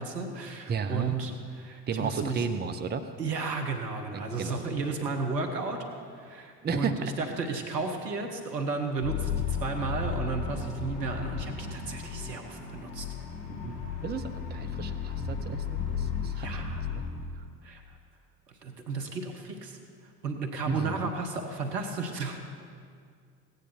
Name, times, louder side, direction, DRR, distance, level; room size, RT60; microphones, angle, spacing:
voice 1, 0.0-2.5 3.2-13.1 16.4-16.8 17.6-17.8 18.6-19.8 20.2-22.4, right 4 dB, 80° right, 4 dB, 1.3 m, -33 dB
voice 2, 0.7-1.2 1.9-3.1 4.1-4.7 6.6-7.0 13.6-13.7 14.0-16.5 16.9-17.1 17.4-17.5 20.7-21.1, right 5 dB, 20° right, 8 dB, 0.7 m, -33 dB
sound 1, 9.0-17.1, left 6 dB, 55° left, 2.8 m, -34 dB
16.0 x 9.5 x 4.4 m, 2.2 s
figure-of-eight pair, 60°, 47 cm